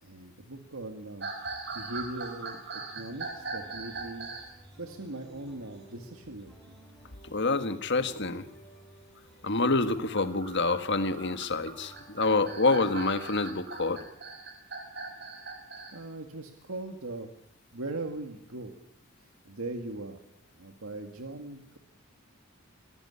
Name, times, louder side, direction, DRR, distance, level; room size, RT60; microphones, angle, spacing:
voice 1, 0.0-1.3 1.7-6.5 15.9-17.3 17.7-18.7 19.2-20.2 20.6-21.8, right 2 dB, 70° right, 5 dB, 2.0 m, -40 dB
sound 1, 1.2-4.5 6.0-6.6 7.0-7.1 7.8-8.1 9.8-16.0, right 3 dB, 50° right, 5.4 m, -40 dB
sound 2, 3.1-14.1, right 1 dB, ahead, 6.1 m, -55 dB
voice 2, 7.3-8.5 9.4-14.1, left 3 dB, 55° left, 10 dB, 1.7 m, -27 dB
22.5 x 16.5 x 9.9 m, 0.75 s
head